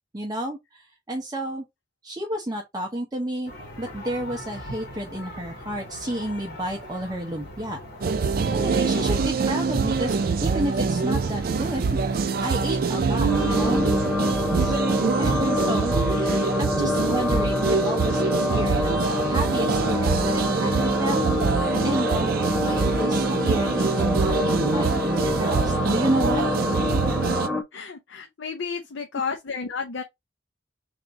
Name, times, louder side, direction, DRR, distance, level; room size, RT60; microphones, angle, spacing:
voice 1, 0.1-1.6 2.0-3.5 3.8-7.8 8.5-12.0 12.4-14.1 14.5-19.0 19.3-26.5, right 1 dB, 20° right, 0.8 m, -31 dB
sound 1, 3.5-13.9, equal, 55° left, 2.1 m, -40 dB
sound 2, 8.0-27.5, right 5 dB, 55° right, 0.4 m, -24 dB
sound 3, 13.3-27.6, left 2 dB, 5° left, 0.5 m, -27 dB
voice 2, 27.7-30.0, left 5 dB, 90° left, 0.6 m, -32 dB
3.5 x 2.6 x 4.0 m
head